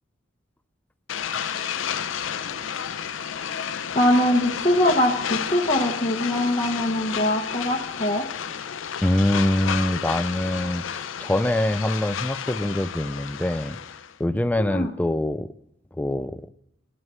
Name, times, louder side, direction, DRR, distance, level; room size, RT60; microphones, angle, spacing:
sound 1, 1.1-14.1, left 8 dB, 75° left, 0.5 m, -31 dB
voice 1, 3.9-8.2 14.6-14.9, left 1 dB, 30° left, -2 dB, 0.9 m, -22 dB
voice 2, 9.0-13.8 14.2-15.5 16.0-16.4, left 1 dB, 10° left, 13 dB, 0.3 m, -24 dB
11.0 x 6.4 x 7.3 m, 0.78 s
head